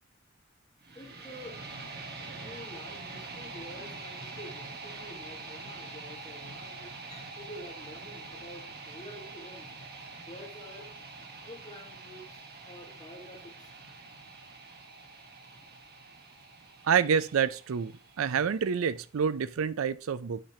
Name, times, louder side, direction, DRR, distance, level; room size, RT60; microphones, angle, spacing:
sound 1, 0.8-18.8, right 3 dB, 50° right, 1.2 m, -45 dB
voice 1, 0.9-1.6 2.3-9.7 10.2-10.9 11.4-13.7, left 1 dB, 20° left, 3.5 m, -48 dB
voice 2, 16.8-20.4, right 7 dB, 85° right, 0.4 m, -28 dB
8.9 x 5.0 x 2.8 m
head